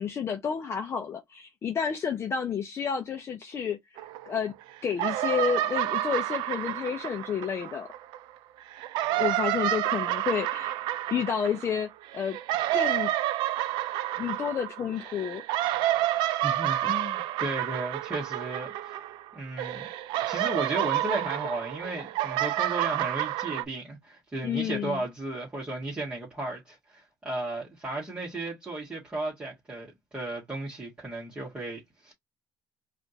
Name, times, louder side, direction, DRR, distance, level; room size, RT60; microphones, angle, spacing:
voice 1, 0.0-3.8 4.3-4.5 4.8-7.9 9.1-10.8 11.1-12.4 12.7-13.1 14.2-15.4 24.4-25.0, left 7 dB, 35° left, 0.7 m, -30 dB
sound 1, 4.0-4.6 4.9-8.2 8.7-19.3 19.6-23.6, right 14 dB, 85° right, 0.4 m, -29 dB
voice 2, 16.4-19.0 19.3-19.9 20.3-29.9 30.1-32.1, right 2 dB, 15° right, 1.5 m, -34 dB
4.9 x 2.5 x 2.8 m
cardioid pair, 140°, 8 cm